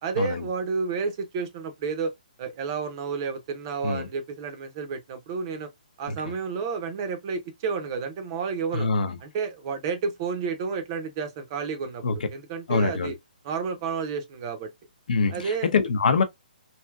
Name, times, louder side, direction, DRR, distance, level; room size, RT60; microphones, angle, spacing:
voice 1, 0.0-2.1 2.4-5.7 6.0-8.9 9.2-13.1 13.4-14.7 15.3-15.7, right 5 dB, 30° right, 0.6 m, -31 dB
voice 2, 8.7-9.2 12.0-12.2 12.7-13.1 15.1-16.2, left 4 dB, 65° left, 0.7 m, -24 dB
3.2 x 2.7 x 2.3 m
hypercardioid pair, 160°, 5 cm